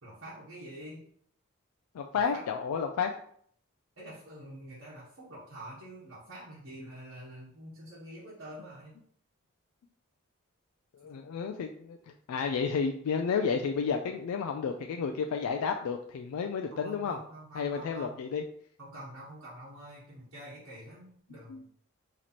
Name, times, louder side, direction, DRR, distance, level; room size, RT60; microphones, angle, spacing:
voice 1, 0.0-1.0 2.1-2.4 4.0-9.0 11.0-11.1 16.7-18.2 18.8-21.7, right 1 dB, 70° right, -9 dB, 1.2 m, -47 dB
voice 2, 1.9-3.1 11.0-12.0 12.3-17.2 17.6-18.4 21.5-21.6, left 6 dB, 85° left, 4 dB, 0.3 m, -31 dB
3.1 x 2.9 x 4.0 m, 0.62 s
head